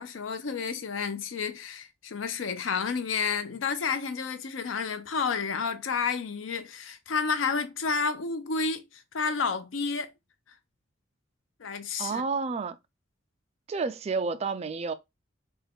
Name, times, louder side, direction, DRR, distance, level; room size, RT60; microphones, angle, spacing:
voice 1, 0.0-10.1 11.6-12.2, left 5 dB, 90° left, 0.5 m, -30 dB
voice 2, 12.0-12.8 13.7-14.9, right 4 dB, 35° right, 0.3 m, -30 dB
3.5 x 2.3 x 3.4 m
head